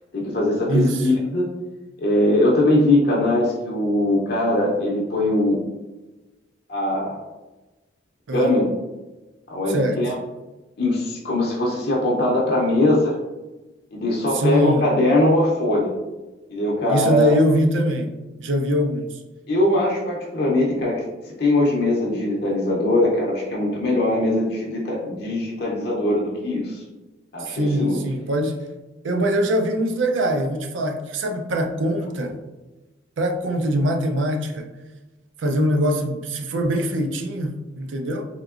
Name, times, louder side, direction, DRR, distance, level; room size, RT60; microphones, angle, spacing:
voice 1, 0.1-1.5 2.0-5.6 6.7-7.2 8.3-8.7 9.5-10.1 10.8-13.1 13.9-15.9 16.5-17.4 19.5-21.0 21.4-26.8 27.3-28.0, left 1 dB, 55° left, -3 dB, 0.5 m, -21 dB
voice 2, 0.7-1.1 8.3-8.5 9.7-10.0 14.3-14.8 16.9-19.2 27.4-28.6 29.0-32.4 33.2-34.7 35.4-38.3, equal, 80° right, 4 dB, 0.4 m, -23 dB
3.5 x 2.8 x 2.4 m, 1.1 s
head